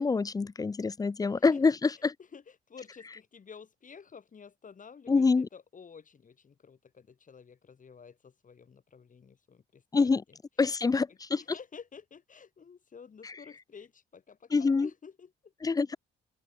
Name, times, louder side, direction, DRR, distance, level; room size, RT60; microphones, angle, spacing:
voice 1, 0.0-2.1 5.1-5.5 9.9-10.2 10.6-11.4 14.5-14.9 15.6-16.0, left 4 dB, 20° left, 0.5 m, -26 dB
voice 2, 1.3-10.4 10.9-15.5, left 6 dB, 40° left, 4.4 m, -51 dB
open air
cardioid pair, 90°, 20 cm